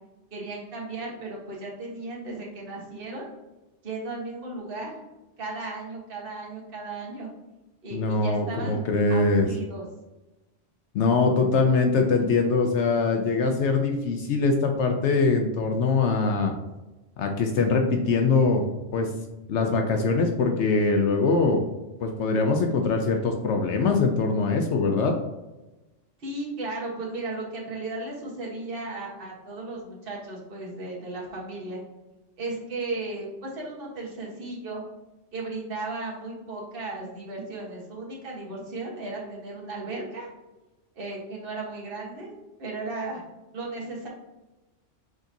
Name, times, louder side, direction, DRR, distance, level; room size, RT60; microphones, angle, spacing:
voice 1, 0.3-3.3 3.8-4.9 5.4-7.3 7.8-9.9 26.2-31.8 32.4-34.8 35.3-40.3 40.9-42.3 42.6-43.2 43.5-44.1, right 2 dB, 50° right, -4 dB, 1.4 m, -35 dB
voice 2, 7.9-9.5 10.9-16.5 17.2-18.6 18.9-19.1 19.5-21.6 22.0-25.1, left 4 dB, 70° left, 4 dB, 0.9 m, -23 dB
5.0 x 3.9 x 2.7 m, 1.0 s
omnidirectional pair, 1.3 m